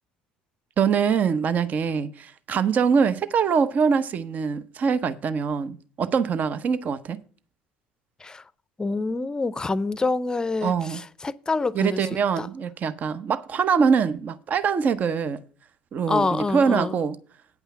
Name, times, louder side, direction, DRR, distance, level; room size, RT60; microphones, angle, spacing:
voice 1, 0.8-7.2 10.6-11.0 11.7-15.4 15.9-17.2, right 6 dB, 45° right, 0.7 m, -23 dB
voice 2, 8.8-10.7 11.2-12.0 12.4-12.5 16.1-16.9, left 3 dB, 20° left, 0.6 m, -26 dB
9.2 x 5.5 x 6.8 m
hypercardioid pair, 70°, 4 cm